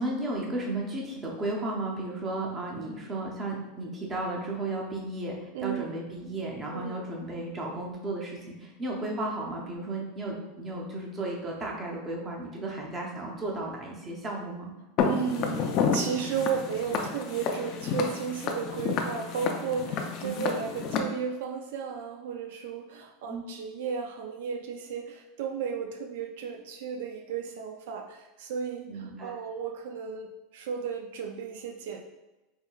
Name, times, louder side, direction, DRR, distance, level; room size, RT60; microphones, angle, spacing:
voice 1, 0.0-14.7 20.2-20.5 23.3-23.4 28.9-29.3, right 2 dB, 15° right, -1 dB, 0.6 m, -34 dB
voice 2, 5.5-6.0 6.7-7.0 15.0-32.0, right 6 dB, 70° right, 4 dB, 0.3 m, -34 dB
Walk footsteps, 15.0-21.0, left 6 dB, 35° left, 0.4 m, -30 dB
4.4 x 2.7 x 2.3 m, 1.1 s
supercardioid pair, 165°, 0 cm